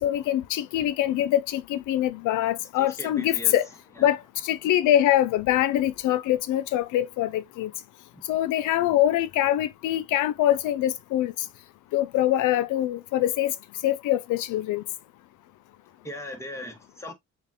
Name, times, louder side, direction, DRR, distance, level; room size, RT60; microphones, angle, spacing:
voice 1, 0.0-3.7 4.0-4.2 4.4-7.7 8.3-11.3 11.9-13.5 13.8-14.8, left 12 dB, 85° left, 0.5 m, -24 dB
voice 2, 2.8-3.5 4.0-4.1 16.0-17.1, left 1 dB, 10° left, 1.3 m, -38 dB
6.8 x 2.5 x 2.8 m
cardioid pair, 90°, 30 cm